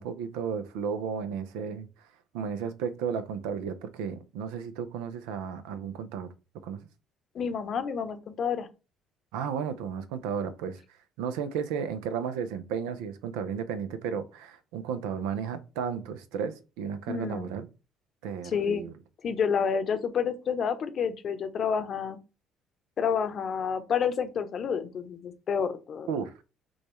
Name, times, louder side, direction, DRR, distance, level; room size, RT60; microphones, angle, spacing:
voice 1, 0.0-1.9 2.3-6.3 6.6-6.9 9.3-10.8 11.2-17.7 18.2-18.9 26.1-26.3, right 7 dB, 75° right, 0.5 m, -33 dB
voice 2, 7.3-8.7 17.1-17.5 18.4-18.8 19.2-22.2 23.0-26.1, left 6 dB, 55° left, 0.7 m, -29 dB
6.0 x 2.3 x 3.1 m
hypercardioid pair, 55°, 0 cm